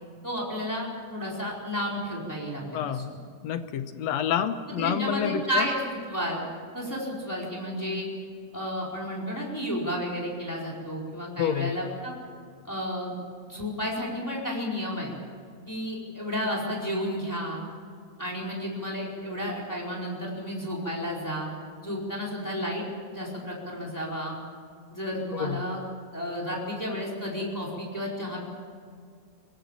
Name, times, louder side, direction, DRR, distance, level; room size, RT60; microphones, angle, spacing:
voice 1, 0.2-3.2 4.7-6.4 6.7-8.1 8.5-12.1 12.6-13.1 13.4-15.1 15.7-17.6 18.2-21.5 21.8-22.8 23.1-24.4 24.9-25.8 26.1-28.4, equal, 5° left, -3 dB, 4.4 m, -32 dB
voice 2, 2.7-3.1 3.4-5.7 11.4-11.8 25.3-25.7, left 9 dB, 75° left, 10 dB, 2.0 m, -28 dB
24.0 x 17.5 x 7.4 m, 2.2 s
omnidirectional pair, 3.3 m